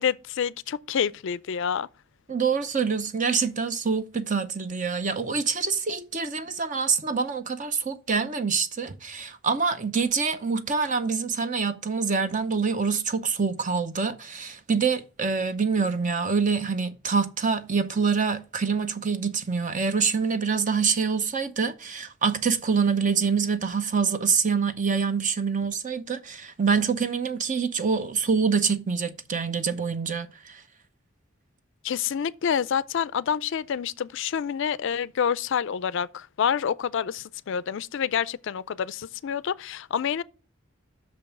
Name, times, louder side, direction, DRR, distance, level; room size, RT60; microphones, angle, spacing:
voice 1, 0.0-1.9 31.8-40.2, left 7 dB, 60° left, 0.4 m, -28 dB
voice 2, 2.3-30.6, right 5 dB, 40° right, 0.7 m, -26 dB
6.2 x 5.3 x 7.0 m
head